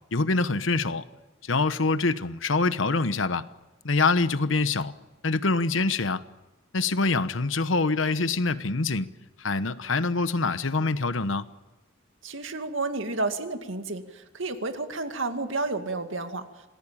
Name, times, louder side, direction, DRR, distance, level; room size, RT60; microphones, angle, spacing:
voice 1, 0.1-1.1 1.4-3.5 3.8-4.9 5.2-6.2 6.7-9.1 9.4-11.5, left 3 dB, 85° left, 1.1 m, -25 dB
voice 2, 12.2-16.5, right 3 dB, 85° right, 2.3 m, -31 dB
27.5 x 19.0 x 8.8 m
head